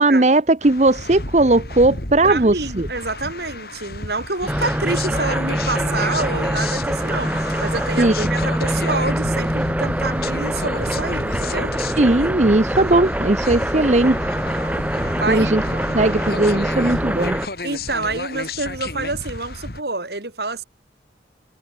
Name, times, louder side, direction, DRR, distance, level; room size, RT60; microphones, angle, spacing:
voice 1, 0.0-2.9 8.0-8.3 12.0-14.2 15.3-15.6 15.9-17.4, right 2 dB, 40° right, 0.8 m, -17 dB
sound 1, 0.6-19.8, left 2 dB, 55° left, 4.1 m, -32 dB
voice 2, 2.2-7.3 7.6-11.7 14.8-15.6 17.6-20.6, right 3 dB, 65° right, 3.9 m, -27 dB
sound 2, 4.5-17.5, right 1 dB, 10° right, 1.4 m, -24 dB
head